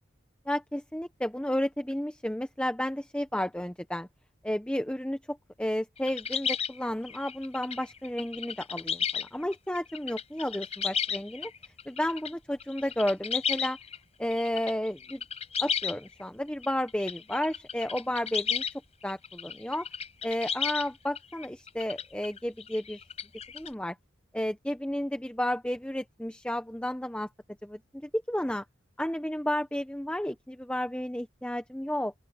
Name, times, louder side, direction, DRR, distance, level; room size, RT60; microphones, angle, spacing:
voice 1, 0.5-4.1 4.4-11.5 11.9-13.8 14.2-15.2 15.6-18.6 19.0-19.9 20.2-23.0 23.5-24.0 24.3-27.3 27.6-28.6 29.0-32.1, left 1 dB, 5° left, 0.7 m, -32 dB
sound 1, 6.0-12.3 12.6-14.0 14.3-16.2 16.6-18.7 19.0-23.7, left 7 dB, 35° left, 5.7 m, -33 dB
open air
head